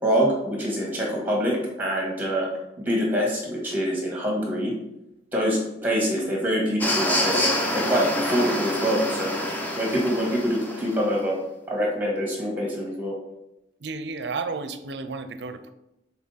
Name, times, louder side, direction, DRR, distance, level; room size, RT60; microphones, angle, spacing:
voice 1, 0.0-2.5 2.8-4.7 5.3-9.4 9.8-11.4 11.7-13.1, equal, 10° right, -3 dB, 1.8 m, -25 dB
sound 1, 6.8-11.0, left 1 dB, 10° left, 0.7 m, -27 dB
voice 2, 13.8-15.7, right 4 dB, 65° right, 10 dB, 0.5 m, -32 dB
6.1 x 4.2 x 4.1 m, 0.89 s
head